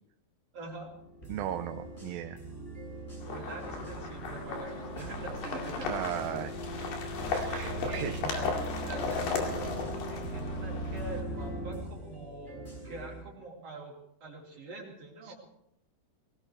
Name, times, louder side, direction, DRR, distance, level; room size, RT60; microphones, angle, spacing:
voice 1, 0.5-0.9 3.2-5.9 7.4-8.5 8.8-13.9 14.2-15.3, right 2 dB, 40° right, -2 dB, 3.8 m, -44 dB
sound 1, 0.7-11.8, right 1 dB, 40° left, 4.5 m, -40 dB
sound 2, 1.2-6.6 7.2-13.2, right 2 dB, 10° left, 7.2 m, -46 dB
voice 2, 1.3-2.4 5.9-6.6 7.3-8.3 15.2-15.3, right 11 dB, 75° right, 7 dB, 2.3 m, -36 dB
sound 3, 3.2-11.2, left 5 dB, 75° left, 4.2 m, -36 dB
22.0 x 18.0 x 3.3 m, 0.78 s
omnidirectional pair, 4.6 m